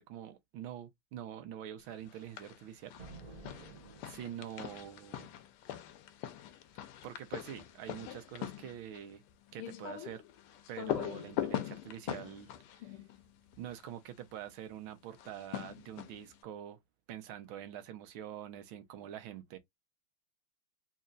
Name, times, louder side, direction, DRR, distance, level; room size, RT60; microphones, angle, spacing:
voice 1, 0.0-2.9 3.5-3.7 4.0-5.3 7.0-9.2 9.5-10.2 10.7-13.0 13.6-16.8 17.1-19.6, right 10 dB, 70° right, 1.5 m, -45 dB
sound 1, 2.1-2.6 2.9-13.9 15.1-16.4, left 12 dB, 85° left, 1.5 m, -42 dB
sound 2, 3.0-4.7, right 3 dB, 35° right, 0.7 m, -51 dB
4.3 x 2.8 x 2.4 m
omnidirectional pair, 2.4 m